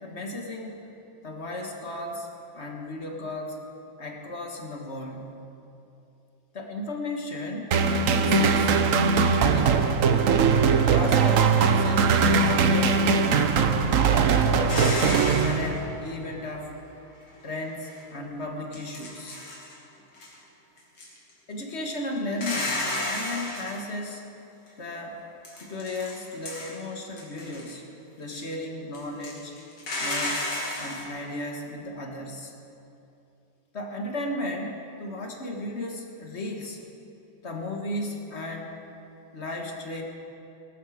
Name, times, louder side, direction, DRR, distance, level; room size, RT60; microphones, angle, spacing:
voice 1, 0.0-0.8 1.2-3.6 4.0-5.3 6.5-8.7 9.2-9.8 10.9-13.5 13.9-15.1 15.4-16.7 17.4-19.4 21.5-24.2 24.8-25.2 25.6-27.8 28.2-29.5 30.0-30.5 30.8-32.5 33.7-36.8 37.4-38.8 39.3-40.0, left 1 dB, 35° left, 1 dB, 1.5 m, -35 dB
sound 1, 7.7-16.0, right 5 dB, 70° right, 0.7 m, -21 dB
sound 2, 14.7-15.7 17.8-18.0 18.7-19.8 20.1-20.3 20.8-21.3 22.3-23.8 25.4-26.8 27.2-27.7 28.3-28.4 28.9-31.1, left 1 dB, 80° left, 3.5 m, -32 dB
19.5 x 13.0 x 4.9 m, 2.8 s
omnidirectional pair, 2.4 m